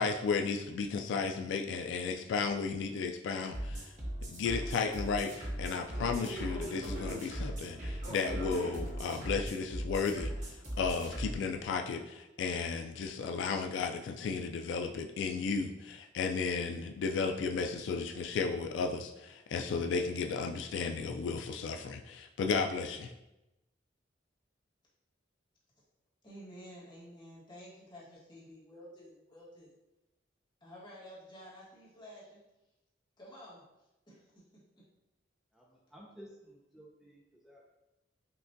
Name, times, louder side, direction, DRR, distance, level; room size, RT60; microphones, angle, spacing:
voice 1, 0.0-3.9 4.3-10.3 10.8-23.1, left 5 dB, 85° left, 4 dB, 0.3 m, -34 dB
sound 1, 3.5-11.3, right 1 dB, 40° right, 0.9 m, -38 dB
voice 2, 26.2-29.7 30.6-32.4 33.2-33.6 34.1-34.4, equal, 25° left, -7 dB, 1.3 m, -51 dB
voice 3, 35.5-37.7, equal, ahead, -4 dB, 0.4 m, -55 dB
5.8 x 2.2 x 2.6 m, 0.94 s
head